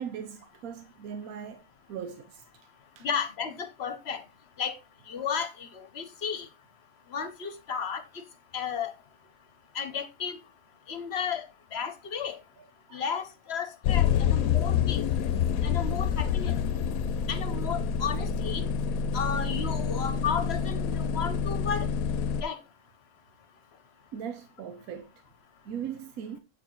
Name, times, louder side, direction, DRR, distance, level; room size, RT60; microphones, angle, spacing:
voice 1, 0.0-1.6 1.9-2.4 3.0-3.1 12.9-13.0 24.1-25.1 25.6-26.4, right 8 dB, 85° right, 1.2 m, -39 dB
voice 2, 3.0-4.2 4.6-4.7 5.1-6.5 7.1-8.0 8.5-8.9 9.7-10.4 10.9-11.5 11.7-12.4 12.9-15.0 15.6-16.6 17.3-18.6 19.1-21.9 22.4-22.6, left 7 dB, 55° left, 1.0 m, -33 dB
sound 1, 13.8-22.4, left 7 dB, 85° left, 1.0 m, -27 dB
8.5 x 4.6 x 3.9 m
omnidirectional pair, 1.5 m